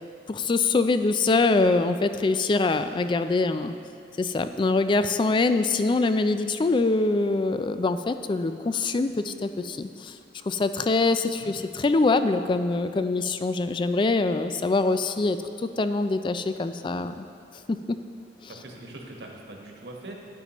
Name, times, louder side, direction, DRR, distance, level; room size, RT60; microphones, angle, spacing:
voice 1, 0.3-3.7 4.2-10.2 10.5-17.3 17.7-18.0 18.4-18.5, left 3 dB, 25° left, 10 dB, 0.3 m, -24 dB
voice 2, 18.5-20.1, right 2 dB, 70° right, 0 dB, 1.3 m, -42 dB
11.5 x 9.3 x 3.0 m, 2.5 s
head